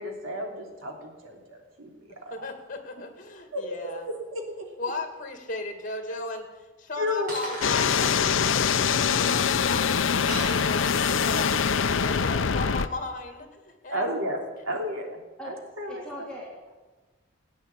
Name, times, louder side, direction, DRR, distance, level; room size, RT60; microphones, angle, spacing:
voice 1, 0.0-2.5 3.5-4.7 7.0-7.6 13.9-14.4 14.7-16.3, left 1 dB, 85° right, 1 dB, 3.3 m, -33 dB
voice 2, 2.3-4.1 4.8-6.5 6.8-14.1, left 2 dB, 40° left, 5 dB, 2.4 m, -36 dB
Shatter, 7.3-7.9 10.3-11.3, right 1 dB, 45° right, 6.2 m, -36 dB
sound 1, 7.6-12.9, left 6 dB, 75° left, 0.6 m, -24 dB
voice 3, 15.8-16.7, equal, 5° left, -5 dB, 3.3 m, -40 dB
16.5 x 9.3 x 8.5 m, 1.2 s
head